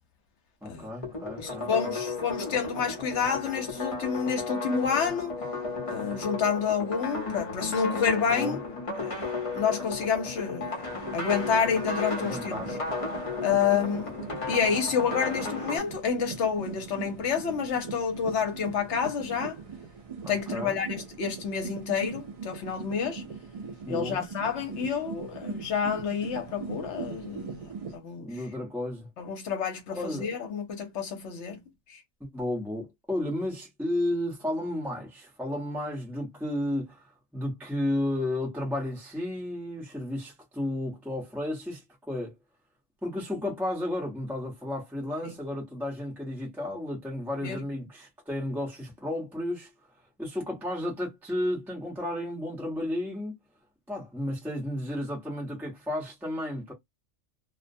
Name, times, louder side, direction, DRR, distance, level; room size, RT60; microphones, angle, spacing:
voice 1, 0.6-2.0 8.3-8.6 12.2-12.7 20.2-20.8 23.8-24.3 28.2-29.1 29.9-30.3 32.2-37.1 37.3-41.8 42.1-42.3 43.0-49.7 50.2-53.3 53.9-56.7, left 1 dB, ahead, 0.7 m, -33 dB
sound 1, 1.0-15.8, left 3 dB, 30° left, 0.8 m, -34 dB
voice 2, 1.4-5.4 5.9-8.6 9.0-9.3 9.5-10.8 11.1-12.6 13.4-14.2 14.5-19.6 20.3-23.2 23.9-28.3 29.2-32.0 45.2-45.4 47.4-47.6, left 6 dB, 65° left, 1.0 m, -29 dB
sound 2, 10.8-28.0, right 5 dB, 65° right, 0.3 m, -41 dB
2.4 x 2.1 x 2.6 m
omnidirectional pair, 1.4 m